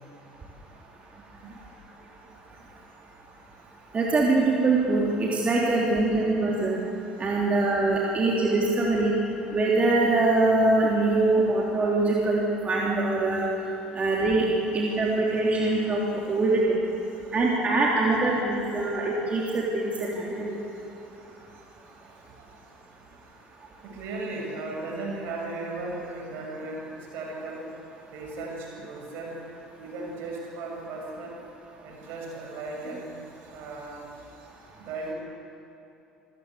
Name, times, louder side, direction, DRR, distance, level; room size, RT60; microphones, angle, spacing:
voice 1, 3.9-6.8 7.2-9.1 9.5-13.5 14.0-14.5 14.7-16.0 16.3-16.8 17.3-19.9 20.2-20.5, right 2 dB, 30° right, -3 dB, 3.5 m, -23 dB
voice 2, 22.0-22.6 23.8-27.7 28.1-29.4 29.8-31.4 31.8-34.5 34.8-35.1, right 2 dB, 55° right, 0 dB, 6.7 m, -37 dB
27.5 x 16.5 x 8.2 m, 2.8 s
figure-of-eight pair, 60°, 5 cm